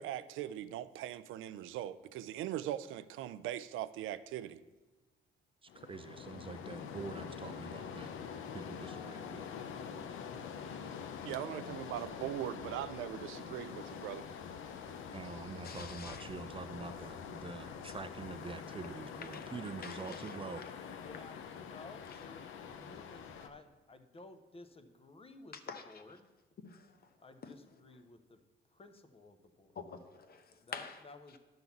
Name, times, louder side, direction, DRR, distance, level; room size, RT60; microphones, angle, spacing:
voice 1, 0.0-4.6 11.2-14.2 15.5-15.6, right 12 dB, 85° right, 0.4 m, -40 dB
voice 2, 5.6-8.1 8.5-9.4 15.1-20.6, right 4 dB, 25° right, 0.4 m, -45 dB
sound 1, 5.7-23.5, left 7 dB, 80° left, 0.7 m, -45 dB
Keyboard (musical), 8.9-11.1, left 6 dB, 5° right, 0.8 m, -63 dB
voice 3, 15.6-16.3 17.8-17.9 19.1-19.5 19.8-20.8 25.7-26.0 26.6-27.2 27.4-27.5 29.8-31.0, left 5 dB, 50° left, 1.0 m, -48 dB
voice 4, 20.7-26.3 27.2-28.4 28.7-29.8 30.6-31.4, left 3 dB, 30° left, 0.9 m, -55 dB
10.5 x 3.9 x 7.0 m
cardioid pair, 90°, 20 cm